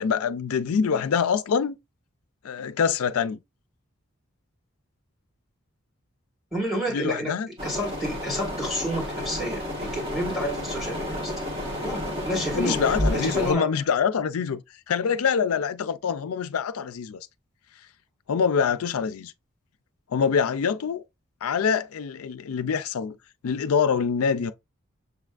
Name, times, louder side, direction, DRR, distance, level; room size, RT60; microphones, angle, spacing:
voice 1, 0.0-1.8 2.4-3.4 6.9-7.5 12.4-17.2 18.3-19.3 20.1-21.0 21.4-23.2 23.4-24.5, left 6 dB, 85° left, 0.4 m, -25 dB
voice 2, 6.5-7.3 7.6-11.3 11.8-12.8 13.1-13.7, equal, ahead, 1.9 m, -30 dB
sound 1, 7.6-13.5, left 1 dB, 25° right, 1.3 m, -31 dB
6.7 x 3.3 x 2.4 m
head